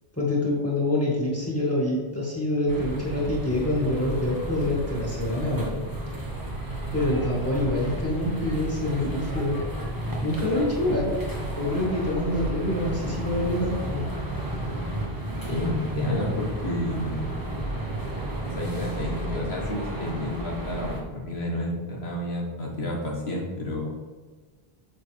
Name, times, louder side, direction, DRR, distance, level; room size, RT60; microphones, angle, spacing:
voice 1, 0.1-5.8 6.9-9.6 10.2-14.1, left 1 dB, 15° left, -4 dB, 2.2 m, -26 dB
sound 1, 2.7-21.0, right 1 dB, 20° right, 1.3 m, -32 dB
voice 2, 15.5-17.3 18.4-23.9, left 1 dB, 75° left, -2 dB, 2.0 m, -30 dB
8.1 x 6.8 x 3.5 m, 1.4 s
omnidirectional pair, 1.1 m